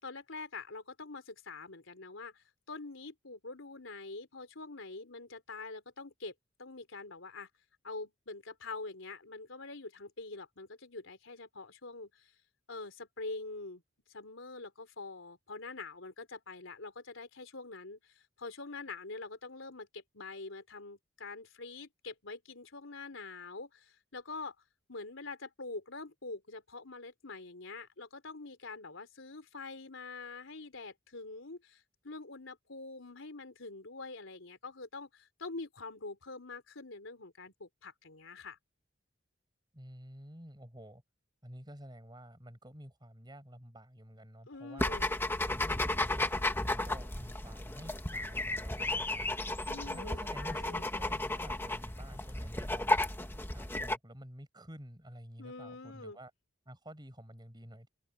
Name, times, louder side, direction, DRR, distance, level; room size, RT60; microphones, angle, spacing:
voice 1, 0.0-6.3 6.6-7.5 7.8-12.3 12.7-13.8 14.1-24.6 24.9-38.6 44.5-45.1 49.7-50.8 55.4-56.2, left 3 dB, 85° left, 3.5 m, -45 dB
voice 2, 39.7-41.0 41.4-45.0 45.5-49.4 49.9-53.0 53.5-56.3 56.7-57.9, equal, 20° right, 5.6 m, -50 dB
sound 1, 44.8-54.0, left 2 dB, 10° left, 1.6 m, -34 dB
open air
head